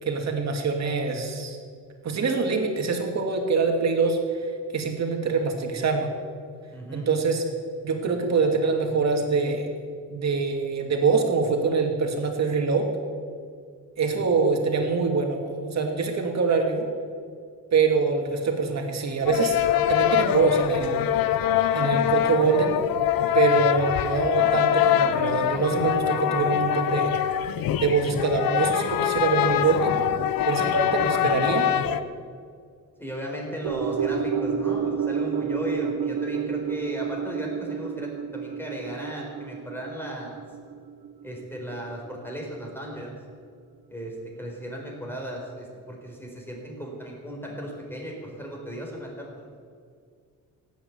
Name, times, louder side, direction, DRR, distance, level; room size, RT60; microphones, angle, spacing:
voice 1, 0.0-1.6 2.0-6.1 6.9-7.4 7.8-9.7 10.1-12.9 14.0-16.9 17.7-19.6 19.9-21.0 21.7-22.7 23.3-27.1 27.8-30.0 30.4-31.7, right 4 dB, 50° right, 3 dB, 2.5 m, -24 dB
voice 2, 6.7-7.1 14.1-14.2 33.0-40.4 41.2-43.2 43.9-49.5, equal, 5° left, -1 dB, 4.3 m, -36 dB
sound 1, 19.3-32.0, left 10 dB, 85° left, 0.8 m, -24 dB
sound 2, 33.6-42.1 42.4-42.5, right 7 dB, 85° right, 1.0 m, -30 dB
16.0 x 9.3 x 8.5 m, 2.1 s
cardioid pair, 125°, 34 cm